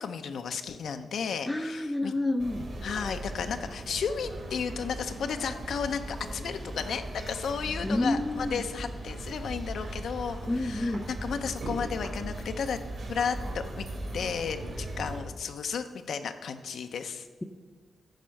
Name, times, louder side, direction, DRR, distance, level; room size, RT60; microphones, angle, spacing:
voice 1, 0.0-2.1 2.8-12.8 13.1-13.9 14.1-17.3, left 6 dB, 80° left, 8 dB, 0.5 m, -33 dB
voice 2, 1.5-2.7 7.8-8.6 10.5-11.1, left 2 dB, 15° left, 9 dB, 0.5 m, -29 dB
sound 1, 2.4-15.2, right 1 dB, 65° right, 3.0 m, -38 dB
10.5 x 4.3 x 6.3 m, 1.5 s
wide cardioid pair, 105°, 0 cm